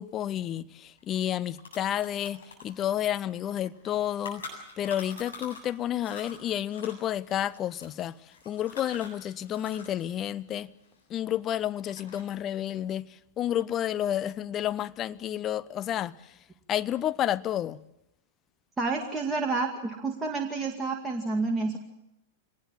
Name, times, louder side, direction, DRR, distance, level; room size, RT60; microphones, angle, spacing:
voice 1, 0.0-4.4 4.8-8.1 8.5-10.7 11.1-13.1 13.4-16.1 16.7-17.8, left 11 dB, 30° left, 0.8 m, -30 dB
sound 1, 1.0-1.1 1.3-5.7 6.0-10.0 10.3-11.4 11.8-12.4, left 3 dB, 75° left, 8.0 m, -45 dB
voice 2, 18.8-21.8, right 3 dB, 15° right, 2.3 m, -29 dB
24.5 x 19.5 x 7.6 m
figure-of-eight pair, 95°, 0 cm